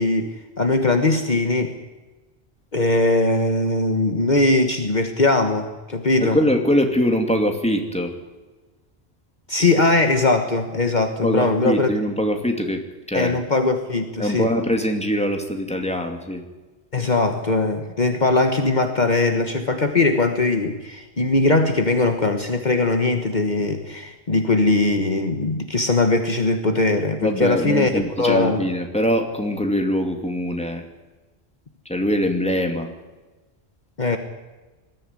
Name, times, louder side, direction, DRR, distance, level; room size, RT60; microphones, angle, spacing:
voice 1, 0.0-1.8 2.7-6.4 9.5-11.9 13.1-14.5 16.9-28.7 34.0-34.2, left 2 dB, 45° left, 6 dB, 1.5 m, -20 dB
voice 2, 6.2-8.1 11.2-12.8 13.1-13.4 14.2-16.4 27.2-30.8 31.8-32.9, equal, 5° left, 3 dB, 2.4 m, -22 dB
20.5 x 14.0 x 9.8 m, 1.2 s
omnidirectional pair, 1.1 m